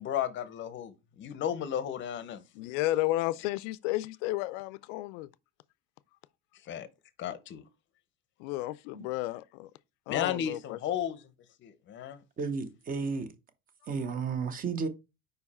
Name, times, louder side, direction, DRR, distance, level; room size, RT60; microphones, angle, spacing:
voice 1, 0.0-2.4 6.7-6.9 7.2-7.6 10.1-11.3 11.6-12.2, left 9 dB, 30° left, 0.7 m, -34 dB
voice 2, 2.6-5.3 8.4-9.7 10.1-10.8, left 17 dB, 80° left, 0.5 m, -32 dB
voice 3, 12.4-13.3 13.9-14.9, right 5 dB, 25° right, 0.8 m, -33 dB
5.2 x 4.6 x 4.2 m
cardioid pair, 155°, 37 cm